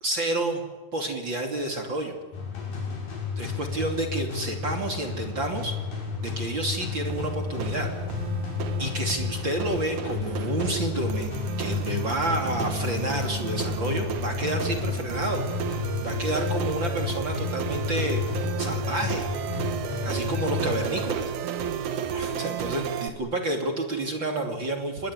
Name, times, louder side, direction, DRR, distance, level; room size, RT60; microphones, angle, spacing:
voice 1, 0.0-0.6 0.9-2.1 3.4-5.8 6.2-7.9 8.8-11.3 11.6-15.4 16.0-18.2 18.6-19.2 20.0-21.3 22.1-25.1, right 2 dB, 30° right, 3 dB, 2.5 m, -29 dB
sound 1, 2.3-21.3, left 6 dB, 45° left, 8.0 m, -32 dB
sound 2, 7.1-23.1, right 8 dB, 85° right, 1.7 m, -33 dB
27.5 x 22.0 x 9.8 m, 1.2 s
omnidirectional pair, 5.8 m